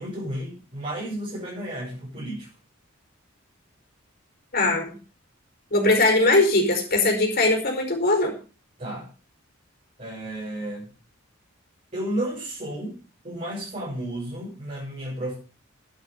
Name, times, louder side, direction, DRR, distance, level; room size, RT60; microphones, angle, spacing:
voice 1, 0.0-2.5 8.8-9.1 10.0-10.9 11.9-13.0 13.2-15.4, right 1 dB, 35° right, -7 dB, 6.8 m, -32 dB
voice 2, 4.5-4.9 5.7-8.3, left 2 dB, 50° left, 2 dB, 4.8 m, -20 dB
10.5 x 10.0 x 6.7 m, 0.36 s
head